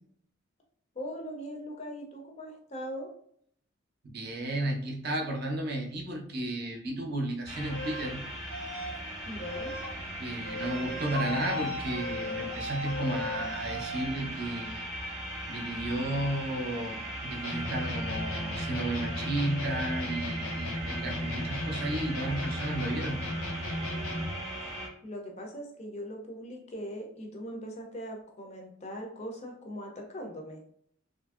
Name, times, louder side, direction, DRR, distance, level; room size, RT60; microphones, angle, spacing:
voice 1, 1.0-3.1 9.3-9.7 25.0-30.6, equal, 30° left, 1 dB, 0.4 m, -40 dB
voice 2, 4.0-8.2 10.2-14.9 15.5-23.2, right 1 dB, 45° right, 1 dB, 0.5 m, -33 dB
sound 1, 7.5-24.9, right 1 dB, 15° right, 0.8 m, -39 dB
sound 2, 7.6-8.1 8.5-9.0 9.4-9.9 10.4-14.1, left 1 dB, 85° right, 0.7 m, -37 dB
sound 3, 17.4-24.4, left 1 dB, 90° left, 0.6 m, -35 dB
2.7 x 2.5 x 2.3 m, 0.64 s
head